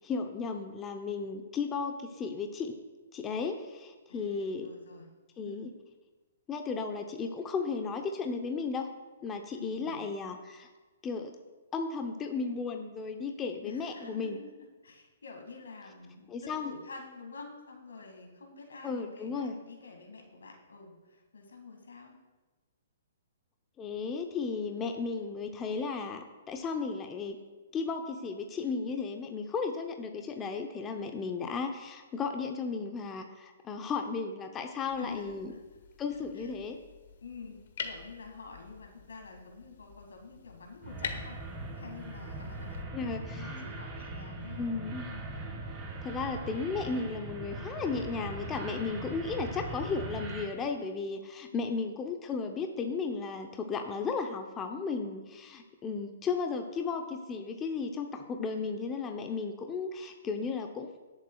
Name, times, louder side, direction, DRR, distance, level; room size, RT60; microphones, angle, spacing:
voice 1, 0.0-2.7 3.1-4.7 5.4-5.7 6.5-8.9 9.2-10.7 11.0-11.3 11.7-14.4 16.3-16.7 18.8-19.5 23.8-27.4 27.7-35.5 36.0-36.8 42.9-43.6 44.6-45.1 46.0-60.9, left 4 dB, 20° left, 4 dB, 0.7 m, -34 dB
voice 2, 4.1-5.1 5.4-5.7 9.6-10.0 13.6-14.5 14.8-22.2 35.0-35.6 36.3-36.6 37.2-41.4 41.7-42.8 43.3-44.6 45.1-45.2 51.5-51.7, left 4 dB, 85° left, 2 dB, 2.1 m, -48 dB
sound 1, 34.8-42.8, left 6 dB, 65° left, 1.1 m, -46 dB
sound 2, 40.8-50.4, right 2 dB, 25° right, 3.5 m, -40 dB
20.0 x 7.2 x 2.3 m, 1.2 s
hypercardioid pair, 140°, 0 cm